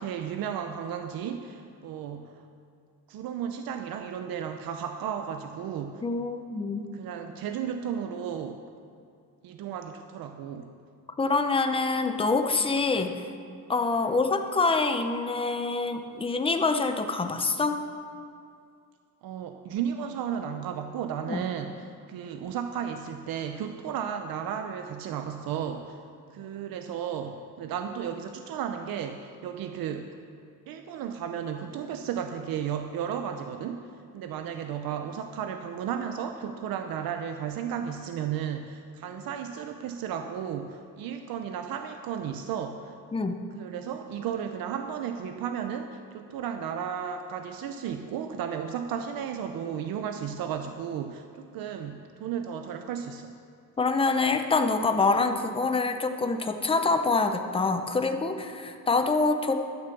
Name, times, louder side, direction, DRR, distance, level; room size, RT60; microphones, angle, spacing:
voice 1, 0.0-2.5 3.1-6.0 6.9-8.6 9.4-10.7 14.0-14.1 19.2-21.7 22.1-26.0 26.3-30.1 30.7-33.9 34.1-43.0 43.5-53.3, right 8 dB, 85° right, 6 dB, 0.7 m, -34 dB
voice 2, 6.0-6.9 11.2-13.2 13.7-17.8 21.3-21.4 43.1-43.4 53.8-59.6, left 3 dB, 15° left, 6 dB, 0.7 m, -26 dB
12.5 x 6.7 x 7.1 m, 2.4 s
cardioid pair, 150°, 34 cm